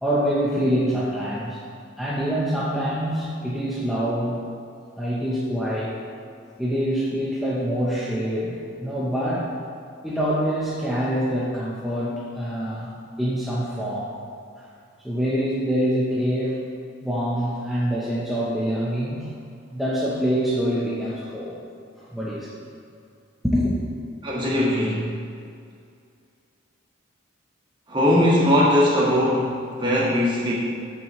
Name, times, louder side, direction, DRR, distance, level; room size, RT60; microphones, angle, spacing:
voice 1, 0.0-1.6 2.0-4.4 5.0-6.0 6.6-9.5 10.0-12.9 13.2-14.1 14.6-14.7 15.0-16.6 17.0-19.3 19.7-21.6 22.0-22.5 23.4-23.7, equal, ahead, -8 dB, 1.0 m, -25 dB
voice 2, 24.2-25.1 27.9-30.5, left 1 dB, 25° right, -5 dB, 1.8 m, -20 dB
14.0 x 6.0 x 3.2 m, 2.3 s
head